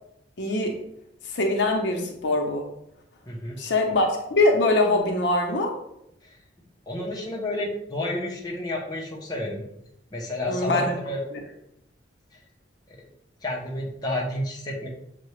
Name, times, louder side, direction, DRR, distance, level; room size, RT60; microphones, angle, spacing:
voice 1, 0.4-0.8 1.3-2.7 3.6-5.7 10.5-10.9, left 2 dB, 70° left, 2 dB, 0.7 m, -23 dB
voice 2, 3.3-3.6 6.9-9.7 10.1-11.2 12.9-13.0 13.4-14.9, left 1 dB, 20° left, -2 dB, 0.7 m, -30 dB
6.5 x 2.2 x 3.1 m, 0.78 s
head